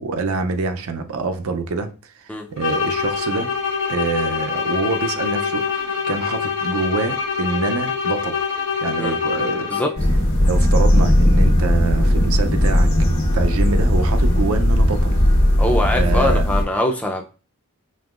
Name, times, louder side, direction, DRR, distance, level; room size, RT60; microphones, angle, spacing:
voice 1, 0.0-3.5 3.9-8.5 8.8-9.7 10.4-12.9 13.3-15.2 15.9-16.5, right 3 dB, 75° right, 0.5 m, -26 dB
sound 1, 2.6-10.1, left 6 dB, 60° left, 1.3 m, -24 dB
sound 2, 10.0-16.6, left 1 dB, 80° left, 1.2 m, -17 dB
voice 2, 15.6-17.2, left 1 dB, 5° left, 0.4 m, -22 dB
5.3 x 2.9 x 2.4 m
head